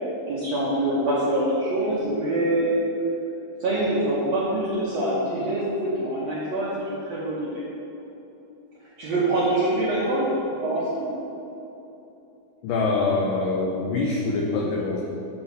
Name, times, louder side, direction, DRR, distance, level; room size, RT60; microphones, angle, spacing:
voice 1, 0.3-2.8 3.6-7.6 9.0-10.3 10.6-11.1, right 1 dB, 75° right, -8 dB, 1.5 m, -25 dB
voice 2, 12.6-15.0, left 3 dB, 85° left, -2 dB, 1.9 m, -24 dB
8.6 x 4.8 x 6.6 m, 3.0 s
omnidirectional pair, 4.8 m